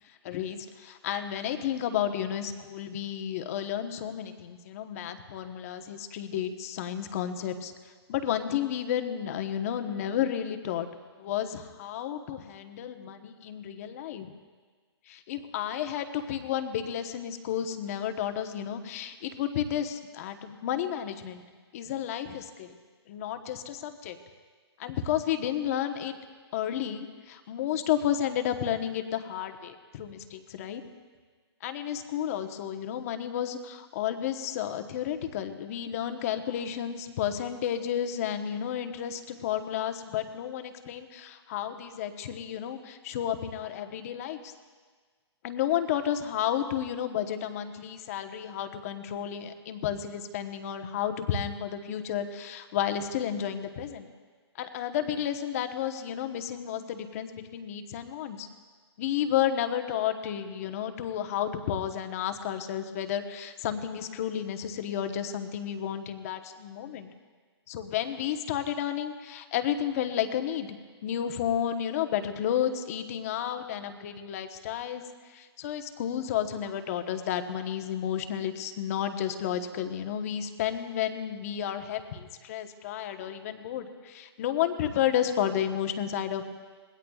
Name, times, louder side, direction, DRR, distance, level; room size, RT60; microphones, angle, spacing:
voice 1, 0.2-7.7 8.1-10.9 11.2-14.3 15.1-21.4 21.7-22.8 23.1-24.2 24.8-26.1 26.5-30.8 31.6-44.5 45.4-54.1 54.6-58.5 59.0-67.1 67.7-70.8 71.0-75.0 75.3-86.5, left 10 dB, 35° left, 7 dB, 1.1 m, -32 dB
26.0 x 21.0 x 2.4 m, 1.5 s
hypercardioid pair, 160°, 14 cm